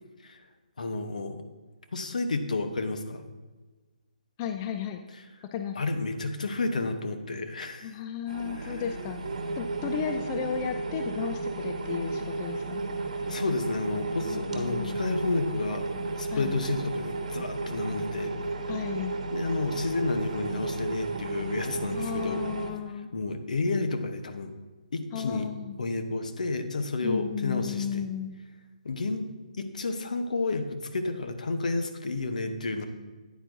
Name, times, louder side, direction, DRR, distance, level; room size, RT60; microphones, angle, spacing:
voice 1, 0.8-1.4 1.9-3.2 5.7-7.9 8.5-8.8 13.3-15.9 16.2-18.3 19.3-22.4 23.1-24.5 24.9-25.5 25.8-28.1 28.8-32.9, left 3 dB, 65° left, 7 dB, 0.9 m, -31 dB
voice 2, 4.4-5.0 5.5-5.8 7.8-9.2 9.6-12.8 14.2-15.0 16.3-16.5 18.7-19.2 21.9-23.1 25.1-25.8 27.0-28.4, left 8 dB, 25° left, 7 dB, 0.3 m, -34 dB
sound 1, 8.3-22.7, right 3 dB, 60° right, 1.3 m, -33 dB
9.2 x 8.9 x 2.6 m, 1.3 s
figure-of-eight pair, 145°, 4 cm